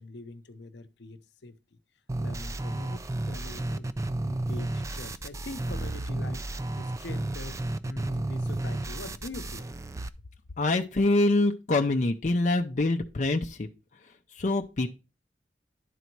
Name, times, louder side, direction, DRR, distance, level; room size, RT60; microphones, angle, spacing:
voice 1, 0.0-1.8 2.2-3.9 4.2-9.7, left 2 dB, 70° left, 0.8 m, -43 dB
sound 1, 2.1-10.1, right 2 dB, 15° right, 0.4 m, -32 dB
voice 2, 10.6-13.7 14.3-14.9, left 2 dB, 40° left, 0.6 m, -25 dB
11.0 x 4.1 x 4.6 m
head